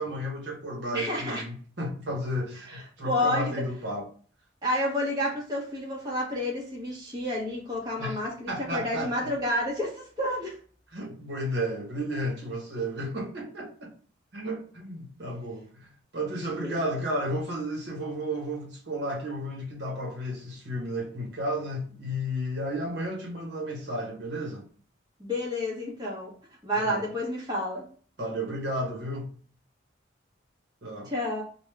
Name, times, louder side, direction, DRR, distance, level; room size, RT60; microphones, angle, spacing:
voice 1, 0.0-4.1 8.0-8.2 8.5-9.3 10.9-13.9 14.3-24.7 26.8-27.0 28.2-29.3 30.8-31.1, equal, 65° right, 1.0 m, -33 dB
voice 2, 0.9-1.4 2.7-3.6 4.6-10.6 16.6-16.7 25.2-26.3 26.6-27.8 31.0-31.4, left 1 dB, 20° right, 1.1 m, -30 dB
3.4 x 2.3 x 3.3 m
head